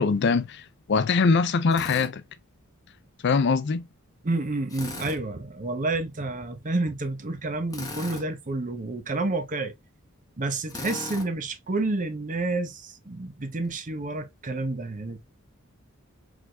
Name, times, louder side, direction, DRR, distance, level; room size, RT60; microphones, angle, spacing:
voice 1, 0.0-2.2 3.2-3.9, left 4 dB, 55° left, 0.5 m, -23 dB
Drill, 1.7-2.1 4.7-5.2 7.7-8.3 10.7-11.3, left 2 dB, 15° left, 1.1 m, -37 dB
voice 2, 4.2-9.7 10.4-15.2, right 2 dB, 40° right, 0.8 m, -29 dB
4.8 x 3.9 x 2.3 m
head